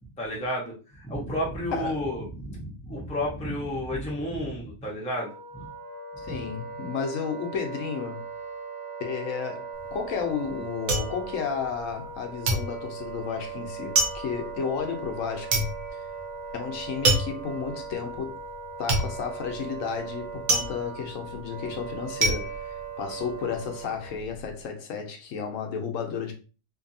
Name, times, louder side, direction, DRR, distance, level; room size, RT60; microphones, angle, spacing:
voice 1, 0.2-5.3 6.3-6.4, equal, 5° left, 0.6 m, -31 dB
voice 2, 1.7-2.0 6.2-8.2 9.0-15.7 16.5-18.4 18.8-26.3, left 6 dB, 75° left, 1.0 m, -32 dB
Wind instrument woodwind instrument, 5.1-24.2, right 5 dB, 60° right, 0.8 m, -39 dB
sound 1, 9.8-12.2 12.5-23.6 23.9-24.5, right 2 dB, 85° right, 1.1 m, -28 dB
2.6 x 2.6 x 2.6 m
omnidirectional pair, 1.4 m